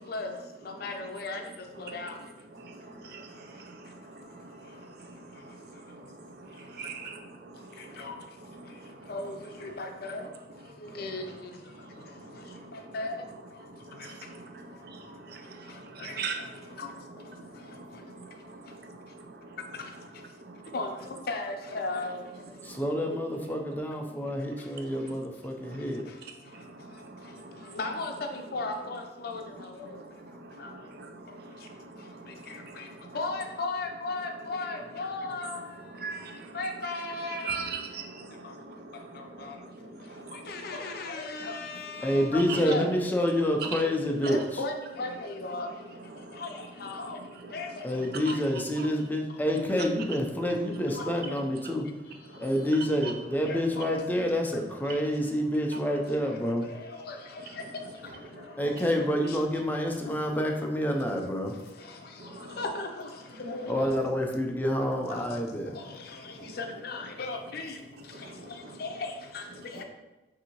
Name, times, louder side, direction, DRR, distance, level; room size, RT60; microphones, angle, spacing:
voice 1, 0.6-1.4 1.8-2.2 8.0-8.1 9.1-10.2 10.9-11.3 12.9-13.1 16.0-16.1 16.8-16.9 20.7-22.2 27.7-29.9 30.6-30.7 32.5-32.9 33.1-35.7 36.5-37.6 39.2-39.6 40.3-42.9 44.3-45.7 46.4-47.2 47.5-47.8 50.9-51.3 53.5-54.0 56.3-56.4 56.7-57.4 59.3-59.4 60.0-60.1 62.6-63.1 63.4-63.8 64.7-65.4 65.7-67.8 68.5-69.4 69.7-69.8, left 3 dB, 60° left, 4 dB, 0.5 m, -36 dB
voice 2, 2.6-8.1 8.6-9.1 10.9-11.0 11.8-12.9 13.6-16.8 17.3-19.6 20.4-20.7 22.6-22.8 23.1-23.2 25.6-25.8 26.5-27.8 29.8-33.2 35.9-36.6 37.2-40.6 42.5-42.6 46.1-46.5 47.0-47.6 48.3-48.4 53.0-53.1 58.3-58.4 62.2-62.6 66.5-66.6 68.1-68.8, right 4 dB, 60° right, 4 dB, 0.5 m, -43 dB
voice 3, 22.6-26.1 42.0-44.6 47.8-51.9 52.4-56.6 58.6-61.5 63.7-65.7, equal, 10° left, 1 dB, 0.5 m, -28 dB
5.5 x 2.7 x 2.9 m, 1.1 s
head